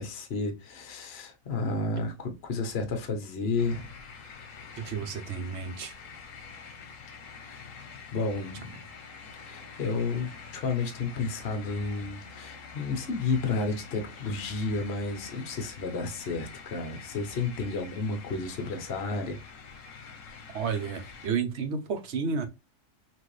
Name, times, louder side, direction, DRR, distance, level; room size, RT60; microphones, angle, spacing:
voice 1, 0.0-3.9 4.2-4.4 7.4-7.7 8.1-8.8 9.4-19.4, left 3 dB, 55° left, 1.1 m, -32 dB
sound 1, 3.6-21.3, left 5 dB, 75° left, 1.2 m, -46 dB
voice 2, 4.8-5.9 20.5-22.5, right 6 dB, 60° right, 1.0 m, -31 dB
5.9 x 2.6 x 3.2 m
omnidirectional pair, 1.4 m